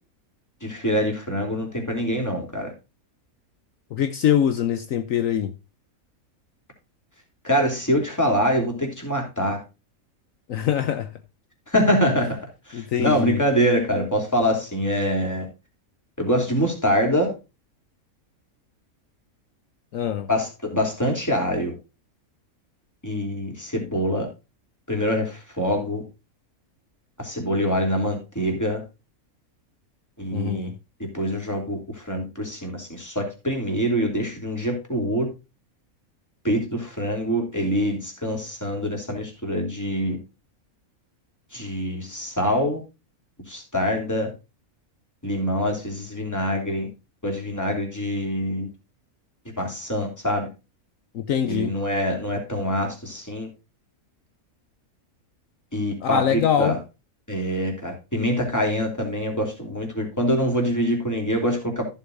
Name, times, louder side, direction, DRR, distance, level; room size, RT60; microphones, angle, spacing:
voice 1, 0.6-2.7 7.4-9.6 11.7-12.4 12.7-15.5 16.2-17.3 20.3-21.7 23.0-24.3 24.9-26.0 27.2-28.8 30.2-30.7 31.1-35.3 36.4-40.2 41.5-42.8 43.5-44.3 45.2-46.9 47.2-48.7 49.6-50.5 51.5-53.5 55.7-56.8 57.3-61.8, equal, 10° left, 3.3 m, -25 dB
voice 2, 3.9-5.5 10.5-11.1 12.7-13.4 19.9-20.3 30.3-30.7 51.1-51.7 56.0-56.8, left 9 dB, 70° left, 1.1 m, -23 dB
14.5 x 7.2 x 2.6 m
omnidirectional pair, 1.5 m